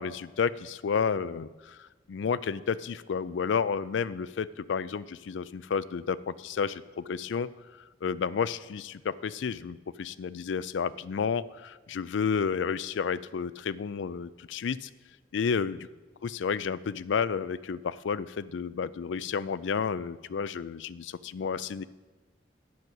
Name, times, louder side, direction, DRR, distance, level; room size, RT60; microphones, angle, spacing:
voice 1, 0.0-7.5 8.0-14.9 15.3-15.9 16.2-21.8, left 6 dB, 85° left, 17 dB, 0.4 m, -31 dB
9.3 x 5.9 x 7.9 m, 1.2 s
head